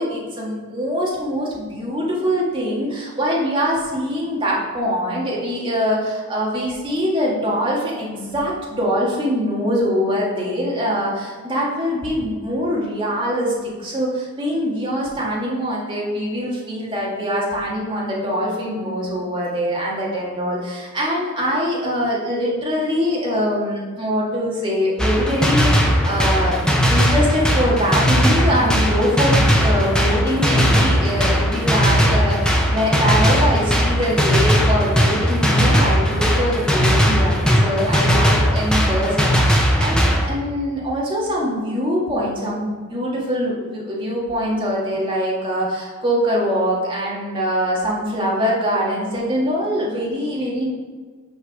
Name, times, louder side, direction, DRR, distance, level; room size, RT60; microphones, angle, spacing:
voice 1, 0.0-26.6 26.9-50.7, equal, 20° right, -5 dB, 1.7 m, -23 dB
sound 1, 25.0-40.3, equal, 5° left, 0.7 m, -18 dB
6.4 x 4.7 x 6.2 m, 1.5 s
head